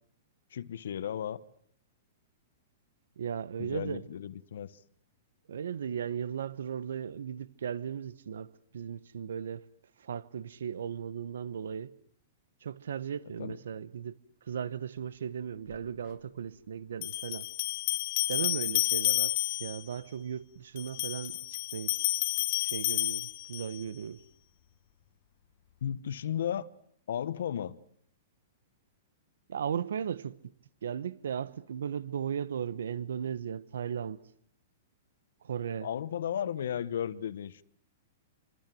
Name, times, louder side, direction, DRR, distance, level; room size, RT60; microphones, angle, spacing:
voice 1, 0.5-1.4 3.6-4.8 13.4-13.6 25.8-26.7 27.1-27.8 35.8-37.6, left 9 dB, 75° left, 1.2 m, -34 dB
voice 2, 3.2-4.0 5.5-9.7 10.0-11.9 12.6-17.5 18.3-21.4 21.7-21.9 22.6-24.2 29.5-30.4 30.8-34.2 35.4-35.9, right 8 dB, 90° right, 1.1 m, -36 dB
sound 1, 15.7-15.8 17.0-19.8 20.8-23.8, left 17 dB, 45° left, 1.2 m, -30 dB
27.5 x 25.5 x 7.7 m
hypercardioid pair, 160°, 0 cm